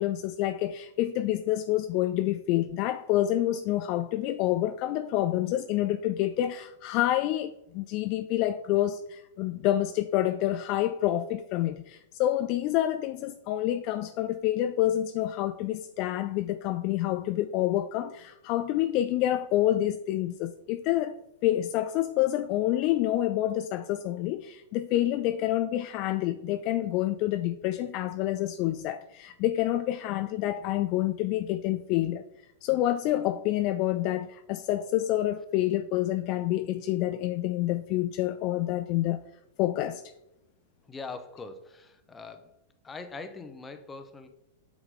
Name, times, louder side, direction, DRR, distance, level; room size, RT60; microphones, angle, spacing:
voice 1, 0.0-21.2 21.4-32.2 32.6-39.3 39.6-40.0, left 13 dB, 45° left, 0.3 m, -28 dB
voice 2, 40.9-42.5 42.8-44.3, left 4 dB, 15° left, 0.8 m, -42 dB
7.9 x 3.6 x 3.8 m
hypercardioid pair, 110°, 0 cm